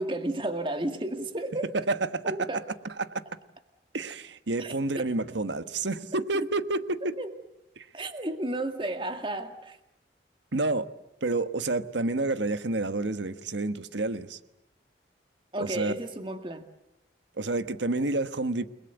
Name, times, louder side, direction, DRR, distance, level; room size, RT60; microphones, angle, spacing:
voice 1, 0.0-1.7 2.2-2.6 4.6-5.0 7.2-7.3 7.9-9.8 15.5-16.6, right 1 dB, 25° right, 7 dB, 2.1 m, -33 dB
voice 2, 1.9-2.5 3.0-3.2 3.9-7.1 7.8-7.9 10.5-10.9 11.2-14.4 15.6-15.9 17.4-18.7, right 2 dB, 80° right, 11 dB, 1.3 m, -29 dB
30.0 x 21.0 x 8.1 m, 0.85 s
head